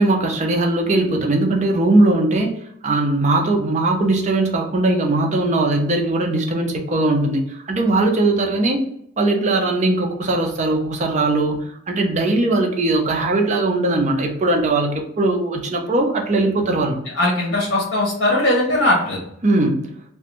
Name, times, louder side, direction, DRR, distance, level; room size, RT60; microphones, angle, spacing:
voice 1, 0.0-2.5 2.8-8.8 9.2-17.0 19.4-19.9, right 2 dB, 35° right, 1 dB, 0.5 m, -19 dB
voice 2, 17.1-19.2, left 1 dB, 65° left, -4 dB, 0.8 m, -19 dB
2.5 x 2.2 x 2.9 m, 0.75 s
head